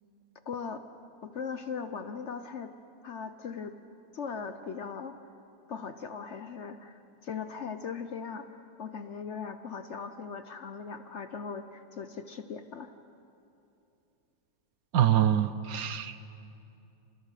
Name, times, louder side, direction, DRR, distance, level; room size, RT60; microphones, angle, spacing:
voice 1, 0.5-0.8 1.2-2.7 3.0-3.8 4.1-5.3 5.7-8.5 8.8-12.9, left 6 dB, 55° left, 9 dB, 0.9 m, -39 dB
voice 2, 14.9-16.2, right 10 dB, 70° right, 12 dB, 1.1 m, -25 dB
29.5 x 15.5 x 6.7 m, 2.7 s
omnidirectional pair, 1.8 m